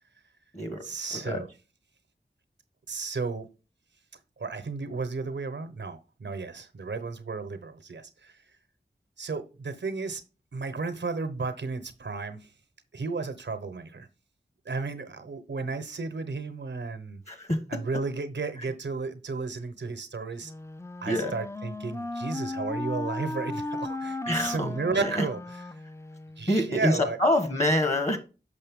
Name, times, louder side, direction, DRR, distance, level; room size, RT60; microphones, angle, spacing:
voice 1, 0.8-1.5 2.9-3.5 4.4-8.4 9.2-10.2 10.5-12.5 12.9-14.1 14.6-17.2 17.7-20.5 21.0-25.4 25.7-25.8 26.4-27.2, right 4 dB, 90° right, 0.9 m, -33 dB
voice 2, 17.3-17.6 21.1-21.3 24.3-25.3 26.5-28.2, left 1 dB, 40° left, 1.4 m, -26 dB
Wind instrument woodwind instrument, 20.4-26.5, left 2 dB, 15° left, 0.4 m, -36 dB
6.6 x 5.4 x 3.6 m
wide cardioid pair, 45°, 18 cm